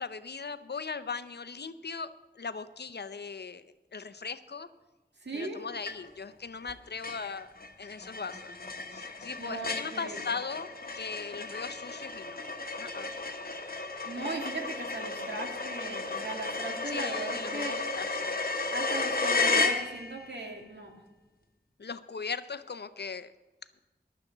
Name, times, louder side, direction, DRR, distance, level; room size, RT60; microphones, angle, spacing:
voice 1, 0.0-3.7 3.9-4.7 5.3-7.5 7.8-8.5 8.9-10.7 10.9-12.4 12.8-13.1 16.9-18.5 21.8-23.3, left 5 dB, 75° left, 12 dB, 0.6 m, -39 dB
voice 2, 5.2-5.7 9.4-10.2 14.1-17.8 18.7-20.9, right 2 dB, 85° right, 1 dB, 2.0 m, -38 dB
sound 1, 5.9-6.3 6.7-6.8 7.0-20.3, left 3 dB, 55° left, 1.0 m, -33 dB
15.5 x 11.0 x 3.9 m, 1.1 s
wide cardioid pair, 60°, 17 cm